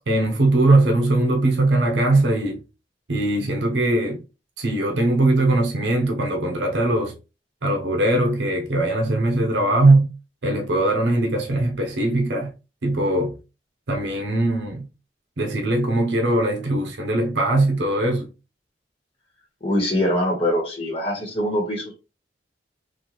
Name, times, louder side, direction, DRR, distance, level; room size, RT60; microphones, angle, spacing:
voice 1, 0.1-2.6 3.1-4.2 4.6-7.1 7.6-10.1 10.4-12.5 12.8-13.4 13.9-14.8 15.4-18.3, right 2 dB, 75° right, 0.7 m, -20 dB
voice 2, 19.6-21.9, equal, 30° left, 1.3 m, -23 dB
3.9 x 2.5 x 3.0 m
head